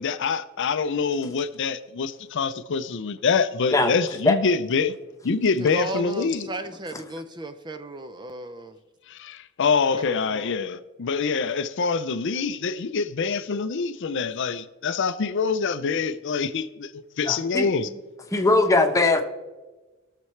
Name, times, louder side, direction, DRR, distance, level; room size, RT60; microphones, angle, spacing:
voice 1, 0.0-4.9 5.2-6.5 9.6-17.9, left 5 dB, 60° left, 0.5 m, -25 dB
voice 2, 5.6-8.8 9.9-10.6, right 1 dB, 20° right, 0.5 m, -35 dB
voice 3, 17.2-17.7 18.3-19.2, left 2 dB, 15° left, 1.0 m, -20 dB
20.0 x 6.8 x 3.2 m
head